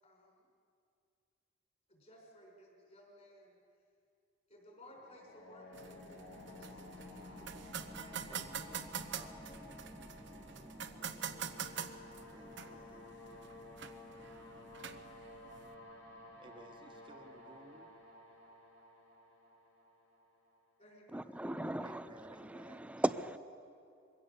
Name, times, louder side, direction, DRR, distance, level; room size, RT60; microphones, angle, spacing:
voice 1, 0.0-0.4 1.9-3.6 4.5-8.5 9.7-9.8 10.3-11.4 20.8-21.3, equal, 35° left, 4.9 m, -60 dB
sound 1, 4.8-20.7, left 2 dB, 75° left, 5.8 m, -54 dB
sound 2, 5.7-15.7, right 8 dB, 65° right, 0.8 m, -46 dB
sound 3, 5.8-18.0, equal, 20° left, 1.3 m, -56 dB
voice 2, 8.3-8.6 9.1-9.3 12.3-13.1 15.6-15.7 16.4-17.9 21.8-22.9, right 1 dB, 25° right, 1.4 m, -56 dB
voice 3, 21.1-23.4, right 1 dB, 5° right, 0.5 m, -37 dB
22.5 x 16.5 x 6.9 m
head